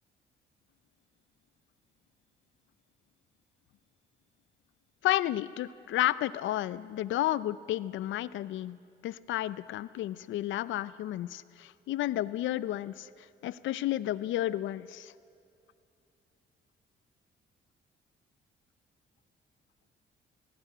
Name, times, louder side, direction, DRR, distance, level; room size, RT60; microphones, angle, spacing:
voice 1, 5.0-8.8 9.0-13.1 13.4-15.1, left 14 dB, 75° left, 18 dB, 0.5 m, -32 dB
18.0 x 16.0 x 9.8 m, 2.5 s
cardioid pair, 90°, 20 cm